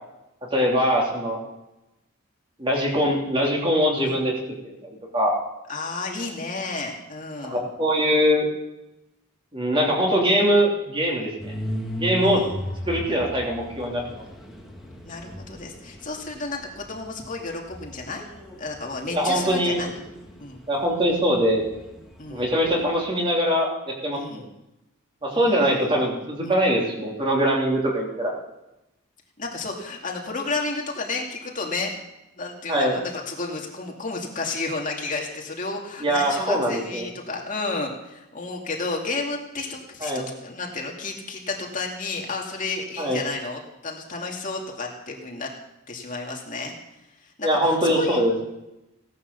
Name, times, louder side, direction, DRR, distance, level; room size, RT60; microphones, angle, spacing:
voice 1, 0.5-1.4 2.6-4.3 4.6-5.4 7.5-8.4 9.5-11.5 12.0-12.4 12.9-14.2 19.1-19.9 20.7-21.6 22.3-24.5 25.2-28.3 32.7-33.0 36.0-37.0 40.0-40.3 43.0-43.2 47.4-48.3, equal, 25° right, -2 dB, 3.1 m, -22 dB
voice 2, 5.7-7.6 12.2-13.0 15.0-18.2 18.6-19.9 20.4-20.6 22.2-22.5 24.1-24.5 25.3-26.2 26.4-26.6 29.4-31.9 32.4-45.5 45.9-46.7 47.2-48.4, left 3 dB, 35° left, 0 dB, 2.4 m, -32 dB
sound 1, 11.4-23.0, equal, ahead, 2.2 m, -38 dB
17.0 x 11.0 x 6.9 m, 0.93 s
head